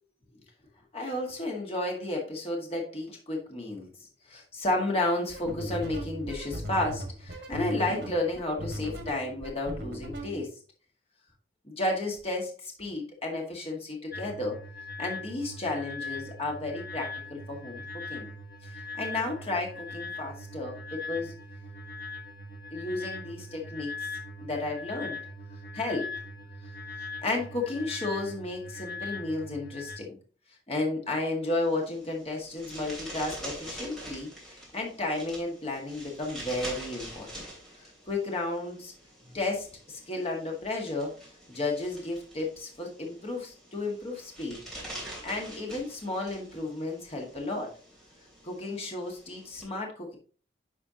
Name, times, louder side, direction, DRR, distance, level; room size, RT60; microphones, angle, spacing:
voice 1, 0.9-3.9 4.3-10.5 11.6-14.6 15.0-18.3 18.6-21.3 22.7-24.1 24.4-25.2 25.7-26.1 26.6-26.7 27.2-30.2 30.7-37.5 37.8-38.9 39.2-41.1 41.5-44.6 45.2-47.7 48.4-50.2, left 2 dB, 35° left, 0 dB, 1.8 m, -33 dB
sound 1, 5.3-10.4, equal, 80° right, 1.6 m, -38 dB
sound 2, 14.1-30.0, left 3 dB, 55° left, 1.4 m, -41 dB
sound 3, 31.4-49.6, right 1 dB, ahead, 3.2 m, -45 dB
9.8 x 4.8 x 2.8 m, 0.39 s
head